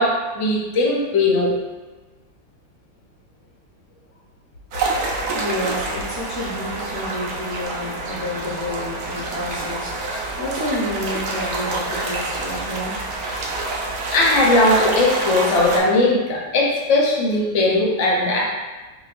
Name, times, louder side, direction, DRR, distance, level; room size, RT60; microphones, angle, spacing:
voice 1, 0.0-1.5 14.1-18.4, left 2 dB, 60° left, -3 dB, 0.8 m, -18 dB
sound 1, 4.7-15.8, right 2 dB, 70° right, 0.9 m, -27 dB
voice 2, 5.3-13.6, left 1 dB, 30° right, -9 dB, 0.4 m, -30 dB
5.0 x 2.3 x 2.5 m, 1.2 s
omnidirectional pair, 2.0 m